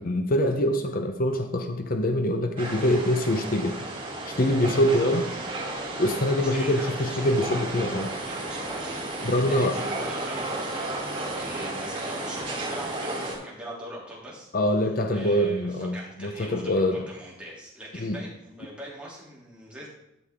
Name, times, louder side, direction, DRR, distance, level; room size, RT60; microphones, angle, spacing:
voice 1, 0.0-3.8 4.4-5.3 6.0-8.1 9.2-9.8 14.5-17.0 18.0-18.2, left 1 dB, 45° left, 6 dB, 0.7 m, -24 dB
sound 1, 2.6-13.4, right 2 dB, 30° right, 3.6 m, -33 dB
voice 2, 6.4-7.3 8.3-14.5 15.1-19.9, right 1 dB, 5° right, -6 dB, 2.9 m, -42 dB
12.0 x 6.3 x 3.7 m, 0.84 s
head